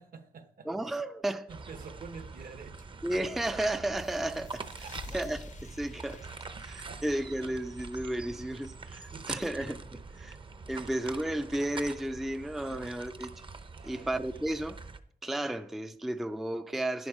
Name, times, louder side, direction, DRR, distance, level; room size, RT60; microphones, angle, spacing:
voice 1, 0.0-0.7 1.5-3.0 4.8-5.0 6.6-7.2 9.1-10.3 10.8-10.9 12.7-12.8 13.7-14.2, right 5 dB, 65° right, 1.1 m, -49 dB
voice 2, 0.7-1.5 3.0-4.6 5.1-6.3 6.6-10.4 10.7-13.3 13.8-14.8 15.2-17.1, right 1 dB, ahead, 0.4 m, -33 dB
sound 1, 1.5-15.0, right 4 dB, 35° right, 0.7 m, -44 dB
sound 2, 4.0-9.2, left 4 dB, 55° left, 0.6 m, -52 dB
10.5 x 10.5 x 4.8 m
wide cardioid pair, 155°, 16 cm